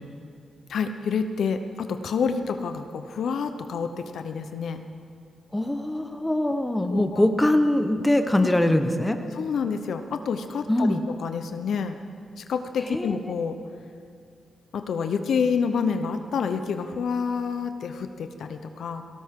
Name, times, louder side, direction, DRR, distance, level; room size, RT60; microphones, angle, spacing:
voice 1, 0.7-4.8 6.9-7.3 9.3-12.0 12.4-13.6 14.7-19.0, left 6 dB, 75° left, 7 dB, 0.8 m, -28 dB
voice 2, 5.5-9.2 10.7-11.0 12.9-13.2, left 1 dB, 10° left, 6 dB, 1.1 m, -22 dB
18.5 x 17.5 x 3.8 m, 2.3 s
cardioid pair, 75°, 0 cm